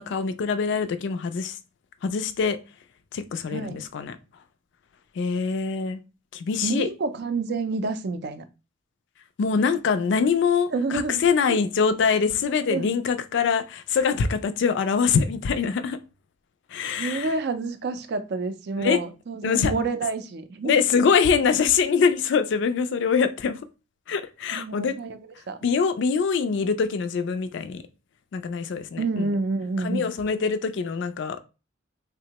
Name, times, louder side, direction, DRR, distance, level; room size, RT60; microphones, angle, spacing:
voice 1, 0.0-1.6 2.0-2.6 3.1-4.2 5.2-6.0 6.3-6.9 9.4-16.0 16.7-17.3 18.8-19.0 19.4-19.7 20.6-23.6 24.1-24.9 25.6-27.8 28.3-29.3 29.8-31.4, left 6 dB, 65° left, 0.3 m, -24 dB
voice 2, 3.5-3.8 6.6-8.4 10.7-11.2 11.5-11.6 12.7-12.9 17.0-20.7 24.5-25.2 25.5-25.7 29.0-30.1, right 3 dB, 55° right, 0.4 m, -28 dB
3.5 x 2.0 x 2.8 m
head